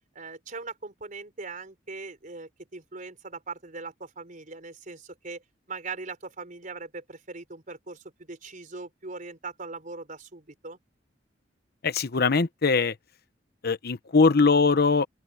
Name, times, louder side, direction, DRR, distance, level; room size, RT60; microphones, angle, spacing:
voice 1, 0.1-5.4 5.7-10.8, right 3 dB, 45° right, 4.4 m, -40 dB
voice 2, 11.8-12.9 13.6-15.1, left 4 dB, 60° left, 0.8 m, -21 dB
open air
head